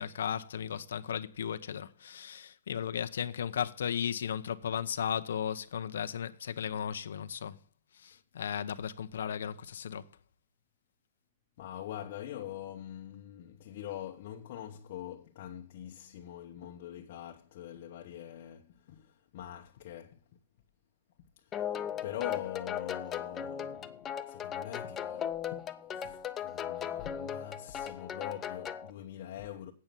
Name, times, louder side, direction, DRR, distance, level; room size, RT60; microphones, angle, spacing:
voice 1, 0.0-7.6 7.9-10.1, left 8 dB, 80° left, 0.9 m, -35 dB
voice 2, 11.6-20.2 21.4-25.6 25.9-29.7, left 11 dB, 40° left, 1.0 m, -43 dB
sound 1, 21.5-28.9, left 9 dB, 15° left, 0.5 m, -37 dB
8.7 x 6.9 x 7.6 m
hypercardioid pair, 175°, 0 cm